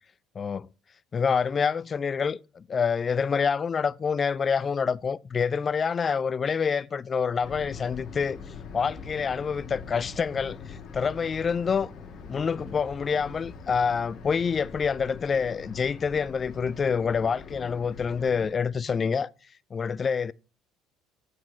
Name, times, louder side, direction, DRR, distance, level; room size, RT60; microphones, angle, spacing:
voice 1, 0.4-0.7 1.1-8.4 8.7-11.9 12.3-19.3 19.7-20.3, left 6 dB, 35° left, 0.3 m, -27 dB
sound 1, 7.4-18.5, left 5 dB, 55° left, 1.3 m, -43 dB
8.0 x 4.6 x 4.3 m
hypercardioid pair, 70°, 0 cm